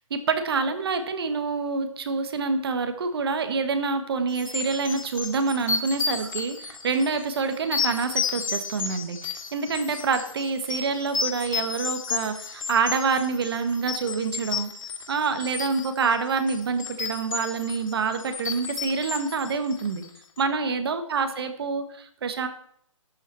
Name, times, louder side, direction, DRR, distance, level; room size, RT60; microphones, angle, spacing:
voice 1, 0.1-14.7 15.1-20.0 20.4-22.5, right 4 dB, 45° right, 9 dB, 1.6 m, -27 dB
sound 1, 4.3-20.2, left 5 dB, 70° left, 2.5 m, -32 dB
12.5 x 5.8 x 7.5 m, 0.66 s
hypercardioid pair, 175°, 17 cm